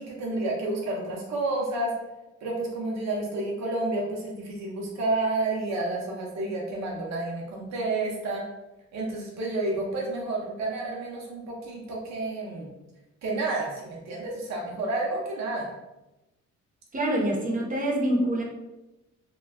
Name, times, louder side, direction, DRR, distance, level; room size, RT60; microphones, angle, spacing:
voice 1, 0.0-1.9 2.4-8.5 8.9-12.7 13.2-15.7, right 2 dB, 65° right, -2 dB, 0.7 m, -30 dB
voice 2, 16.9-18.4, right 1 dB, 25° right, 0 dB, 0.7 m, -25 dB
2.2 x 2.1 x 3.4 m, 0.98 s
cardioid pair, 90°, 30 cm